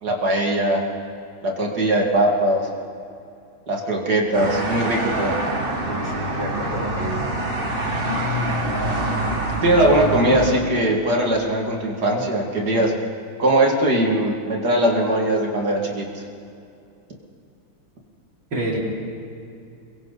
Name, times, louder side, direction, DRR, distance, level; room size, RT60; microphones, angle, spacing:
voice 1, 0.0-0.8 1.4-2.7 3.7-5.4 9.5-12.9 13.4-16.2, right 1 dB, 50° right, 0 dB, 2.8 m, -20 dB
sound 1, 4.3-10.6, right 1 dB, 25° right, 1.8 m, -25 dB
voice 2, 5.9-7.2 18.5-18.8, right 1 dB, 65° right, -4 dB, 5.1 m, -28 dB
28.0 x 23.0 x 4.1 m, 2.5 s
omnidirectional pair, 2.3 m